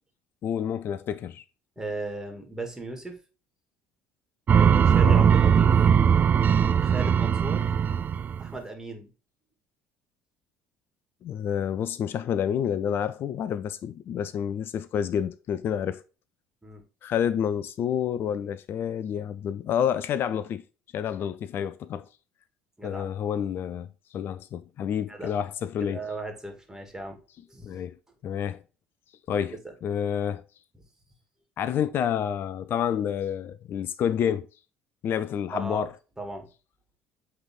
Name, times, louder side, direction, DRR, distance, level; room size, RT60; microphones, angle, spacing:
voice 1, 0.4-1.4 5.0-5.3 11.2-16.0 17.0-20.6 20.9-22.1 22.8-26.0 27.6-27.9 28.2-28.6 29.3-29.6 29.8-30.4 31.6-34.5 35.0-35.9, left 8 dB, 50° left, 0.4 m, -29 dB
voice 2, 1.8-3.2 4.5-5.8 6.8-7.7 8.4-9.1 16.6-16.8 22.8-23.1 25.1-25.4 25.8-27.2 27.5-27.8 35.5-35.8 36.2-36.5, right 2 dB, 10° right, 2.2 m, -36 dB
sound 1, 4.5-8.5, right 7 dB, 35° right, 0.4 m, -20 dB
7.9 x 3.4 x 3.7 m
hypercardioid pair, 60°, 5 cm